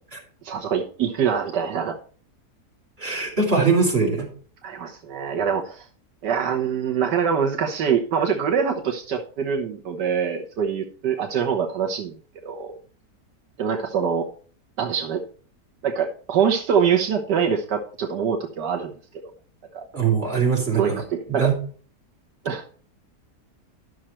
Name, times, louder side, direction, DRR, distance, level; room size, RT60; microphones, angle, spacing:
voice 1, 0.4-2.0 4.6-5.9 6.2-12.1 12.4-12.7 13.6-14.3 14.8-15.2 15.8-18.9 19.7-19.9 20.7-21.5 22.5-22.7, right 7 dB, 85° right, 2 dB, 1.8 m, -24 dB
voice 2, 3.0-4.3 19.9-21.0 21.3-21.6, right 5 dB, 35° right, -2 dB, 4.0 m, -21 dB
12.5 x 6.4 x 4.4 m, 0.43 s
omnidirectional pair, 1.8 m